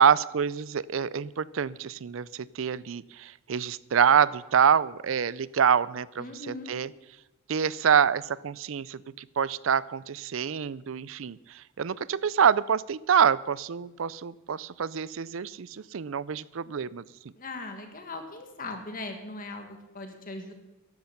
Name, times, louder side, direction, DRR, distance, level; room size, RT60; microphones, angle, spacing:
voice 1, 0.0-6.9 7.5-17.0, right 7 dB, 70° right, 20 dB, 0.5 m, -26 dB
voice 2, 6.2-6.7 17.3-20.5, left 2 dB, 45° left, 5 dB, 1.7 m, -39 dB
14.0 x 12.0 x 5.9 m, 1.0 s
head